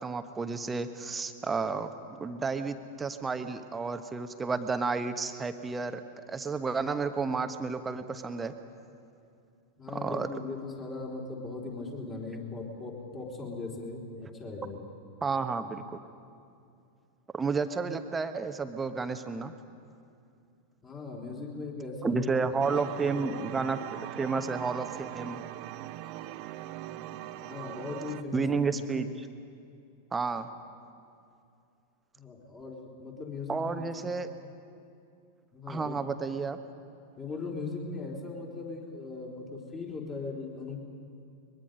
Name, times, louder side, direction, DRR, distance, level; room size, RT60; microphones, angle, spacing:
voice 1, 0.0-1.9 2.2-6.0 6.3-8.5 10.0-10.3 15.2-16.0 17.3-19.5 22.0-23.8 24.1-25.4 28.3-29.3 30.1-30.5 33.5-34.3 35.7-36.6, right 4 dB, 15° right, 9 dB, 1.1 m, -31 dB
voice 2, 9.8-14.8 20.8-23.5 27.4-28.9 32.2-33.9 35.5-36.0 37.2-40.8, left 3 dB, 25° left, -1 dB, 3.9 m, -39 dB
sound 1, 22.6-28.2, right 14 dB, 45° right, 0.6 m, -41 dB
23.0 x 21.5 x 5.3 m, 2.5 s
figure-of-eight pair, 90°, 0 cm